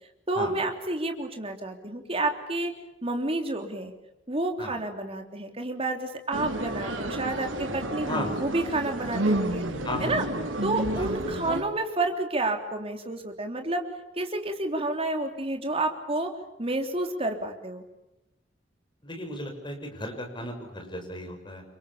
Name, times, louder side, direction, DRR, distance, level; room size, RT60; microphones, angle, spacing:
voice 1, 0.3-2.7 3.0-3.9 4.3-9.6 10.0-10.2 10.6-13.8 14.2-16.3 16.6-17.8, right 2 dB, 30° right, 4 dB, 3.5 m, -30 dB
sound 1, 6.3-11.6, right 1 dB, 80° right, 3.6 m, -30 dB
voice 2, 8.1-8.4 9.8-10.2 11.0-11.1 19.0-21.6, left 1 dB, 25° left, 3 dB, 6.2 m, -35 dB
29.0 x 25.5 x 7.1 m, 0.94 s
head